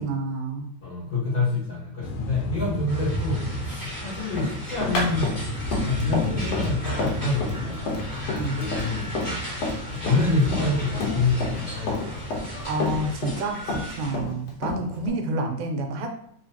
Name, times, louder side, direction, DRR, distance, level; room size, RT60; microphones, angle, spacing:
voice 1, 0.0-0.7 8.4-8.6 12.7-16.1, right 2 dB, 85° right, 3 dB, 2.1 m, -29 dB
voice 2, 0.8-5.5 5.8-8.0 8.6-9.3 9.9-12.3 14.1-14.3 14.8-15.1, left 3 dB, 50° left, -9 dB, 1.6 m, -27 dB
sound 1, 2.0-13.2, equal, 85° left, 2.1 m, -33 dB
sound 2, 2.9-14.1, equal, 15° left, 0.6 m, -38 dB
Run, 4.4-9.8 10.1-11.6 11.9-13.4 13.7-15.1, left 2 dB, 70° left, 1.7 m, -29 dB
4.4 x 3.1 x 2.7 m, 0.66 s
omnidirectional pair, 3.5 m